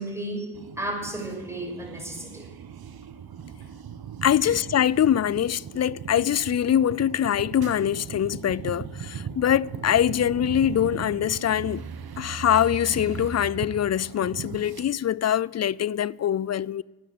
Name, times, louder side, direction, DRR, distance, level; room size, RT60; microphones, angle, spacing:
voice 1, 0.0-2.5 4.4-4.5, right 1 dB, 5° right, 6.0 m, -33 dB
sound 1, 0.5-14.9, right 7 dB, 70° right, 1.1 m, -38 dB
voice 2, 4.2-11.8 12.2-16.8, left 10 dB, 45° left, 0.4 m, -23 dB
12.5 x 9.5 x 9.2 m
supercardioid pair, 45°, 38 cm